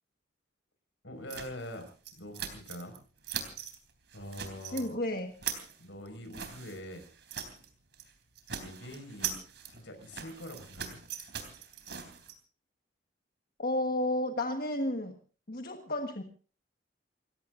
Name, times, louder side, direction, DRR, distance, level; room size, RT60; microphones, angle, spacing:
voice 1, 1.0-1.9 2.2-3.0 4.1-5.0 5.8-7.1 8.5-9.4 9.7-11.0, left 1 dB, 80° left, 7 dB, 5.4 m, -44 dB
sound 1, 1.3-3.0 3.2-3.8 4.1-4.9 5.2-7.7 7.9-8.1 8.4-12.3, right 8 dB, 65° right, 3.5 m, -41 dB
voice 2, 4.7-5.3 13.6-15.1 15.5-16.2, left 1 dB, 50° left, 4 dB, 1.5 m, -32 dB
29.5 x 16.5 x 2.6 m, 0.38 s
head